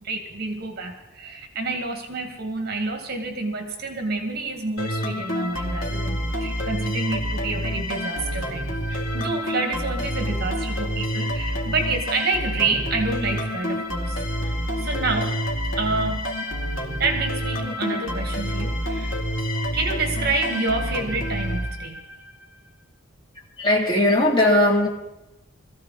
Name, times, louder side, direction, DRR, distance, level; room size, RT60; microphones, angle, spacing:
voice 1, 0.0-14.2 14.4-14.5 14.8-15.4 15.8-16.3 17.0-19.2 19.7-22.0, right 3 dB, 45° right, 4 dB, 1.9 m, -28 dB
sound 1, 4.8-22.3, equal, 75° left, 2.6 m, -28 dB
voice 2, 23.6-24.9, left 1 dB, 25° left, -2 dB, 3.1 m, -18 dB
20.5 x 15.0 x 4.1 m, 0.93 s
head